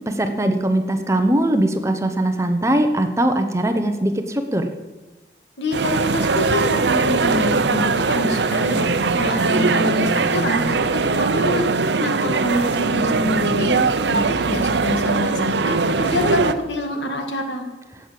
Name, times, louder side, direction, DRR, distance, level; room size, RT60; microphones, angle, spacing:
voice 1, 0.1-4.7, right 1 dB, 15° right, 6 dB, 0.9 m, -20 dB
voice 2, 5.6-8.9 9.2-11.7 12.0-17.7, left 1 dB, 85° left, 4 dB, 2.0 m, -25 dB
sound 1, 5.7-16.5, right 4 dB, 80° right, 0.7 m, -20 dB
12.5 x 8.4 x 7.6 m, 1.2 s
head